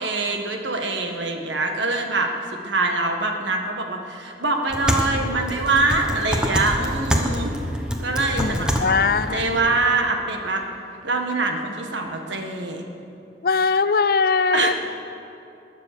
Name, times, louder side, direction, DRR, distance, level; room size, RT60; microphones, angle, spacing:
voice 1, 0.0-2.3 2.6-7.5 8.0-9.0 9.3-10.6 11.0-12.8 14.5-14.7, right 3 dB, 85° right, 3 dB, 1.6 m, -24 dB
sound 1, 4.7-9.8, equal, 5° right, 1.0 m, -26 dB
voice 2, 8.4-9.5 13.4-14.7, left 5 dB, 50° left, 14 dB, 0.4 m, -21 dB
20.5 x 7.5 x 6.9 m, 2.7 s
head